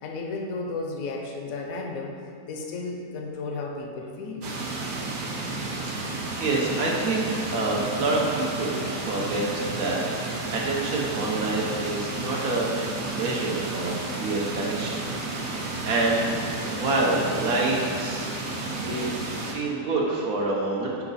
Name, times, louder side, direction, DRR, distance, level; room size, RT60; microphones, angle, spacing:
voice 1, 0.0-2.1 2.5-4.5, left 3 dB, 65° left, 1 dB, 1.1 m, -33 dB
sound 1, 4.4-19.5, right 3 dB, 50° right, 0.6 m, -32 dB
voice 2, 6.4-12.7 13.1-15.0 15.4-16.4 16.6-18.3 18.8-19.1 19.4-21.0, right 2 dB, 70° right, -3 dB, 1.4 m, -27 dB
5.8 x 5.0 x 4.1 m, 2.6 s
omnidirectional pair, 1.7 m